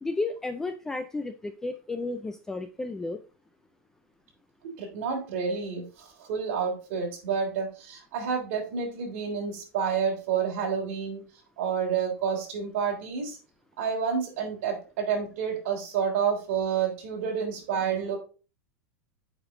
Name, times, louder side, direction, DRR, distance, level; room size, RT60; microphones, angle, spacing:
voice 1, 0.0-3.2, left 3 dB, 5° left, 8 dB, 0.3 m, -32 dB
voice 2, 4.6-11.2 11.6-13.4 13.8-18.2, right 6 dB, 50° right, 0 dB, 3.3 m, -29 dB
8.1 x 5.2 x 3.7 m, 0.34 s
supercardioid pair, 175°, 8 cm